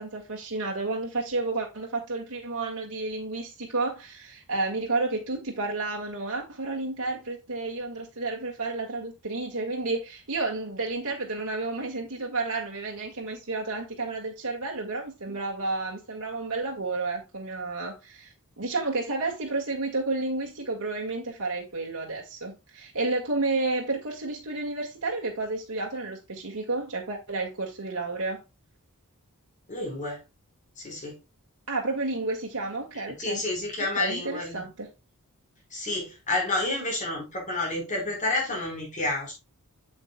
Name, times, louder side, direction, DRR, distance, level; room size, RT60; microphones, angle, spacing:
voice 1, 0.0-28.4 31.7-33.4 33.8-34.9, right 3 dB, 80° right, 1.9 m, -31 dB
voice 2, 29.7-30.2 30.8-31.2 33.2-34.7 35.7-39.3, left 2 dB, 35° left, 4.6 m, -29 dB
8.5 x 7.4 x 2.3 m
head